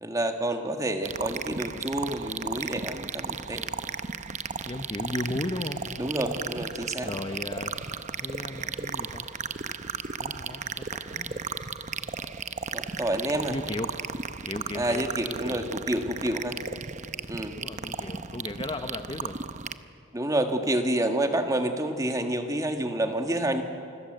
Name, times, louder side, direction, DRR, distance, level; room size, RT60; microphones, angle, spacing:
voice 1, 0.0-3.6 6.0-7.1 12.7-13.6 14.7-16.6 17.3-17.6 20.1-23.6, right 1 dB, 15° right, 5 dB, 1.6 m, -28 dB
sound 1, 1.0-19.8, right 5 dB, 35° right, 0.8 m, -35 dB
voice 2, 4.6-5.9 7.0-7.8 8.2-9.3 10.2-11.5 13.5-14.0 14.4-15.6 17.5-19.4, left 1 dB, 25° left, 7 dB, 0.9 m, -36 dB
27.0 x 21.0 x 7.9 m, 2.5 s
head